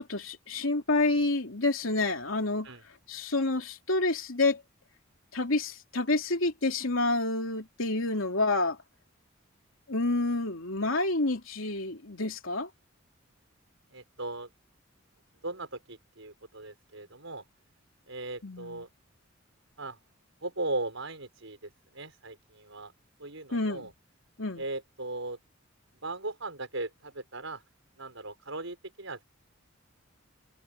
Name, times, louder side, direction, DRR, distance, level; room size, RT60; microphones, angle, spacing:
voice 1, 0.0-2.7 3.1-4.6 5.3-8.8 9.9-12.7 18.4-18.8 23.5-23.9 24.4-24.6, left 2 dB, 85° left, 3.1 m, -28 dB
voice 2, 13.9-14.5 15.4-17.4 18.1-18.9 19.8-20.0 20.4-22.9 23.2-23.9 24.5-25.4 26.0-27.6 28.0-29.2, right 2 dB, 75° right, 6.0 m, -38 dB
head